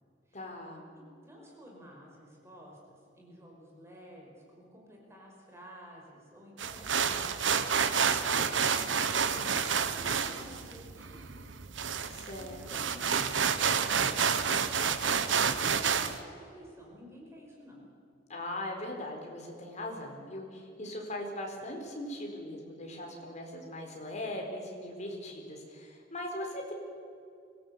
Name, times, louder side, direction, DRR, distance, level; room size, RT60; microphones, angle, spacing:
voice 1, 0.3-0.9 12.1-12.8 18.3-26.7, left 1 dB, 40° left, 1 dB, 4.4 m, -40 dB
voice 2, 0.9-11.5 12.4-13.9 14.3-17.9, equal, 15° right, -1 dB, 5.4 m, -52 dB
sound 1, 6.6-16.2, right 6 dB, 85° right, 1.2 m, -29 dB
24.5 x 17.5 x 8.3 m, 2.4 s
head